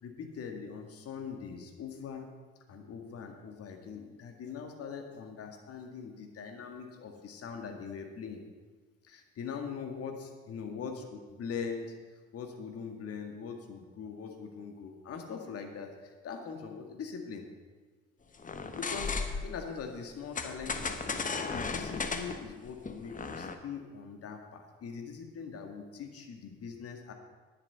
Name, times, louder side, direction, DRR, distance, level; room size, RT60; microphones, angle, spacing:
voice 1, 0.0-2.3 2.7-8.4 9.0-11.9 12.3-17.4 18.7-27.1, left 6 dB, 45° left, 4 dB, 1.9 m, -42 dB
sound 1, 18.4-19.6 20.4-23.6, left 4 dB, 25° left, 1.1 m, -35 dB
11.5 x 9.7 x 5.7 m, 1.4 s
figure-of-eight pair, 50°, 32 cm